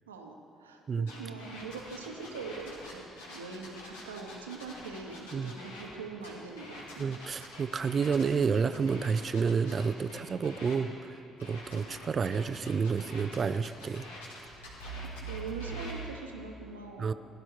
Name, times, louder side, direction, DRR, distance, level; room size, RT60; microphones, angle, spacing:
voice 1, 0.1-7.1 11.7-11.9 15.1-17.1, right 4 dB, 80° right, 3 dB, 1.0 m, -43 dB
sound 1, 1.1-5.9 6.2-10.8 11.4-16.0, right 1 dB, 75° left, 2.1 m, -45 dB
voice 2, 7.0-14.0 17.0-17.1, right 5 dB, 40° right, 13 dB, 0.4 m, -30 dB
16.5 x 11.0 x 4.5 m, 2.6 s
figure-of-eight pair, 50°, 0 cm